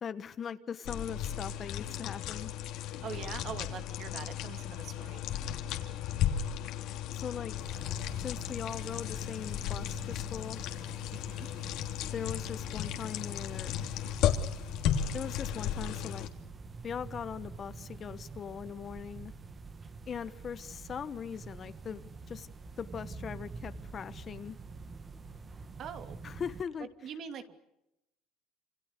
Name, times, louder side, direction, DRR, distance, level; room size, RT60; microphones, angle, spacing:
voice 1, 0.0-2.5 7.1-7.6 8.2-10.6 12.1-13.8 15.1-16.3 16.8-19.3 20.1-22.5 22.8-24.6 26.2-26.9, left 7 dB, 30° left, 12 dB, 1.2 m, -40 dB
sound 1, 0.8-16.3, left 10 dB, 65° left, 3.0 m, -35 dB
voice 2, 3.0-5.2 11.1-11.5 25.8-26.2 27.0-27.6, right 7 dB, 45° right, 8 dB, 2.8 m, -43 dB
sound 2, 7.6-26.6, right 4 dB, 25° right, 1.9 m, -47 dB
28.5 x 27.5 x 6.8 m, 0.88 s
cardioid pair, 145°, 0 cm